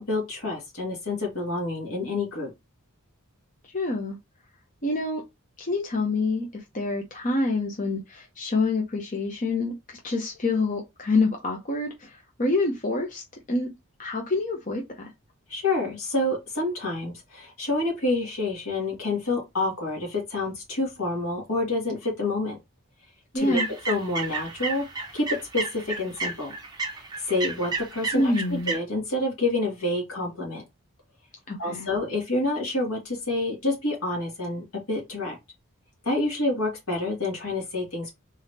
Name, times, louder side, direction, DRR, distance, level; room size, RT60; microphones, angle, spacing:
voice 1, 0.0-2.5 15.5-22.6 23.3-23.6 23.9-24.8 25.1-25.3 25.5-26.5 27.2-30.6 31.6-35.4 36.0-38.2, left 2 dB, 75° left, 2.1 m, -28 dB
voice 2, 3.7-4.2 4.8-5.2 5.6-13.7 14.0-15.1 23.3-23.7 28.1-28.7 31.5-31.9, left 2 dB, 35° left, 0.7 m, -27 dB
sound 1, 23.4-28.8, right 3 dB, 20° right, 0.7 m, -32 dB
3.8 x 3.5 x 2.7 m
head